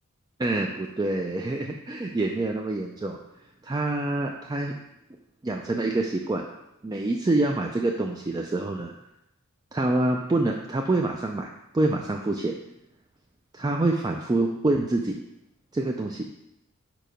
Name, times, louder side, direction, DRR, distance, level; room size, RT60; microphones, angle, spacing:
voice 1, 0.4-3.2 3.6-4.7 5.4-6.4 6.8-8.9 9.7-11.5 11.7-12.5 13.5-15.2 15.7-16.3, right 2 dB, 20° right, 1 dB, 0.3 m, -26 dB
5.0 x 4.6 x 5.1 m, 0.87 s
head